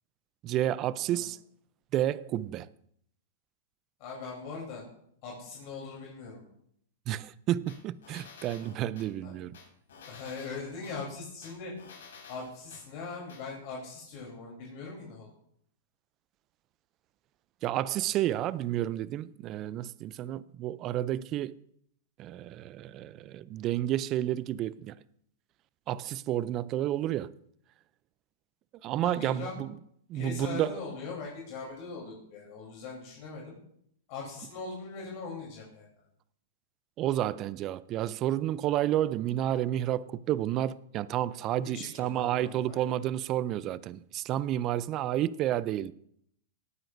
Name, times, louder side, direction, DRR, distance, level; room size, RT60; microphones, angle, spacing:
voice 1, 0.4-1.4 1.9-2.7 7.1-9.6 17.6-21.6 22.2-24.9 25.9-27.3 28.8-29.8 30.1-30.8 37.0-45.9, right 12 dB, 35° right, 0.4 m, -30 dB
voice 2, 4.0-4.8 5.2-6.4 9.2-9.3 10.1-11.7 12.3-15.3 29.0-29.5 30.1-33.6 34.1-35.9 41.7-42.9, left 4 dB, 45° left, 3.5 m, -41 dB
sound 1, 7.7-9.1 9.5-11.0 11.4-12.8 13.3-13.4, left 5 dB, 80° left, 5.1 m, -51 dB
18.0 x 9.5 x 2.6 m
hypercardioid pair, 135°, 0 cm